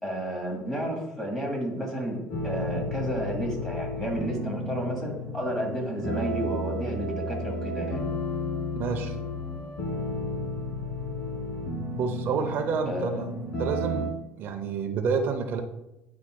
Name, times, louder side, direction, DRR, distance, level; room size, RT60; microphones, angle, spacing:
voice 1, 0.0-8.1 12.9-13.3, equal, 10° left, 0 dB, 2.0 m, -32 dB
sound 1, 2.3-14.1, left 1 dB, 60° left, 1.7 m, -33 dB
voice 2, 8.7-9.2 12.0-13.3 13.6-15.6, right 5 dB, 55° right, 5 dB, 0.6 m, -29 dB
10.0 x 4.7 x 2.2 m, 0.91 s
cardioid pair, 125°, 4 cm